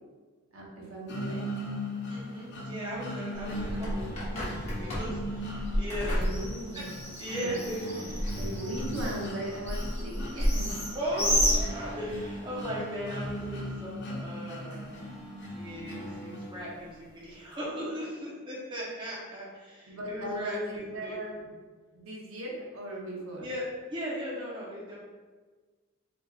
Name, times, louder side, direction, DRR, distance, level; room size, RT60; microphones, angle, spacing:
voice 1, 0.5-1.4 6.0-6.9 7.4-7.5 7.9-8.0 8.3-10.9 19.9-21.4 21.9-23.5, equal, 70° right, -3 dB, 0.8 m, -38 dB
sound 1, 1.1-17.1, equal, 50° left, 0.6 m, -39 dB
voice 2, 2.1-6.2 6.7-6.8 7.2-8.2 10.9-15.0 15.5-21.2 23.4-25.0, equal, 20° right, -6 dB, 0.7 m, -37 dB
Bird, 3.3-12.2, equal, 30° left, 1.0 m, -31 dB
4.0 x 3.4 x 2.3 m, 1.4 s
head